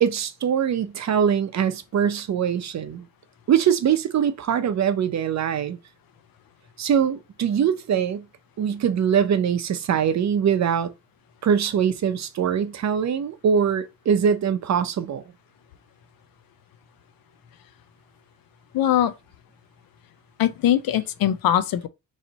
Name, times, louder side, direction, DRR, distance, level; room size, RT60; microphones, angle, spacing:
voice 1, 0.0-3.1 3.5-5.8 6.8-8.2 8.6-10.9 11.4-15.2, right 8 dB, 50° right, 0.6 m, -22 dB
voice 2, 18.7-19.1 20.4-21.9, left 11 dB, 75° left, 0.6 m, -21 dB
3.2 x 2.8 x 3.9 m
cardioid pair, 100°, 35 cm